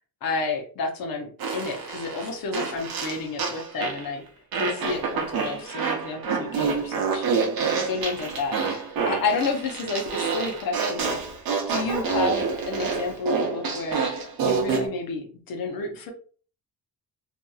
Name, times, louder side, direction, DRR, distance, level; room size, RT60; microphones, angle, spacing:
voice 1, 0.2-4.2 4.5-7.3 7.8-8.6 9.0-11.2 11.7-14.0 14.4-16.1, left 3 dB, 80° left, 3 dB, 0.8 m, -30 dB
Fart, 1.4-4.1 4.5-14.9, right 5 dB, 85° right, 0.8 m, -27 dB
2.8 x 2.5 x 2.3 m, 0.41 s
wide cardioid pair, 175°, 35 cm